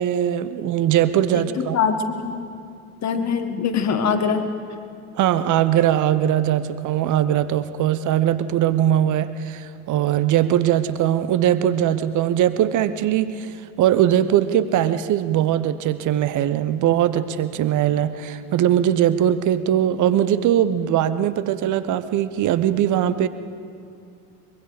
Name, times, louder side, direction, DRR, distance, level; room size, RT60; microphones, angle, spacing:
voice 1, 0.0-1.8 5.2-23.3, right 11 dB, 40° right, 14 dB, 1.0 m, -20 dB
voice 2, 1.3-2.5 3.0-4.6, left 6 dB, 35° left, 7 dB, 1.8 m, -23 dB
23.5 x 23.0 x 5.1 m, 2.4 s
figure-of-eight pair, 65°, 45 cm